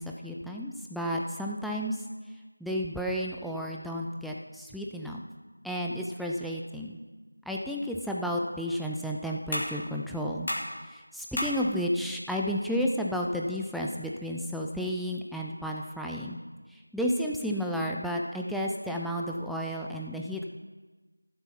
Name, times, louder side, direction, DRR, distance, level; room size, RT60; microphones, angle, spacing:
voice 1, 0.0-2.0 2.6-5.2 5.6-7.0 7.5-10.5 10.9-16.4 16.7-20.5, equal, ahead, -3 dB, 0.4 m, -32 dB
sound 1, 8.5-15.0, left 1 dB, 35° left, 2.8 m, -40 dB
14.5 x 7.8 x 5.8 m, 1.3 s
figure-of-eight pair, 175°, 0 cm